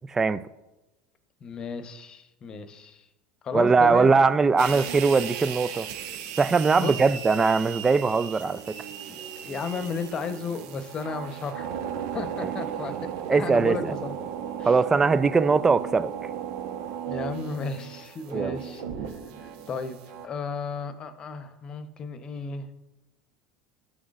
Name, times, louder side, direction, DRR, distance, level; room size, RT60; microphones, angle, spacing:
voice 1, 0.1-0.4 3.5-5.9 6.4-8.7 12.4-12.5 13.3-13.8 14.6-16.3 18.3-18.6, right 4 dB, 20° right, 0.4 m, -21 dB
voice 2, 1.4-3.1 3.4-4.3 6.8-6.9 9.1-11.8 12.1-12.9 13.3-14.1 14.6-14.7 17.1-18.8 19.4-20.0 20.2-22.7, left 4 dB, 35° left, 0.9 m, -34 dB
sound 1, 4.6-20.3, right 8 dB, 70° right, 1.0 m, -36 dB
12.5 x 6.2 x 2.5 m
hypercardioid pair, 95°, 2 cm